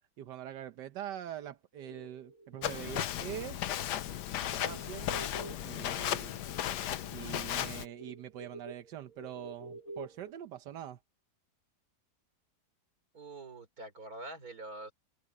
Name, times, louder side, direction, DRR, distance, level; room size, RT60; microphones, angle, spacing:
voice 1, 0.0-3.6 4.5-5.3 5.6-6.4 7.1-11.0, right 11 dB, 90° right, 1.5 m, -44 dB
sound 1, 1.7-10.3, right 2 dB, 55° left, 2.3 m, -50 dB
Walk footsteps, 2.6-7.8, left 11 dB, 80° left, 1.4 m, -35 dB
voice 2, 13.1-14.9, right 2 dB, 60° right, 4.5 m, -45 dB
omnidirectional pair, 1.8 m